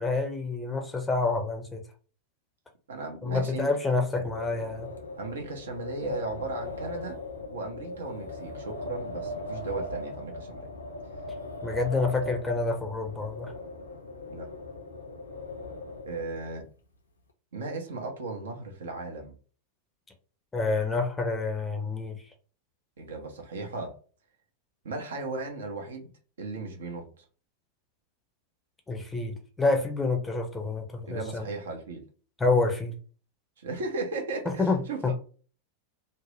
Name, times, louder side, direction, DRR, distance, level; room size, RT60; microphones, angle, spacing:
voice 1, 0.0-1.8 3.2-4.9 11.6-13.5 20.5-22.2 28.9-31.5 32.4-32.9 34.6-35.1, left 3 dB, 10° left, 3 dB, 0.6 m, -28 dB
voice 2, 2.9-3.7 4.2-4.3 5.2-7.2 7.5-10.7 14.3-14.5 16.1-16.6 17.5-19.3 23.0-23.9 24.8-26.1 26.4-27.0 31.1-32.0 33.6-35.1, right 3 dB, 65° right, 3 dB, 0.7 m, -36 dB
Wind, 4.0-16.6, left 2 dB, 75° left, 0.5 m, -39 dB
2.6 x 2.0 x 3.1 m, 0.39 s
figure-of-eight pair, 90°, 0 cm